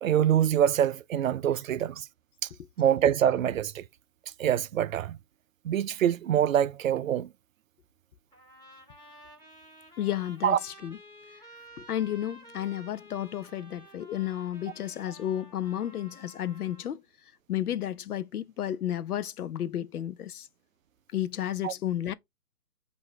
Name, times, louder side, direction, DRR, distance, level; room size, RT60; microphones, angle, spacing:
voice 1, 0.0-2.1 2.4-2.5 2.8-3.8 4.4-5.2 5.6-7.3 10.4-10.6 21.6-21.7, right 10 dB, 60° right, 0.5 m, -25 dB
Trumpet, 8.3-17.0, equal, 10° left, 1.7 m, -52 dB
voice 2, 10.0-11.0 11.8-17.0 17.5-20.5 21.1-22.1, left 11 dB, 70° left, 0.6 m, -32 dB
6.2 x 2.7 x 3.2 m
hypercardioid pair, 145°, 46 cm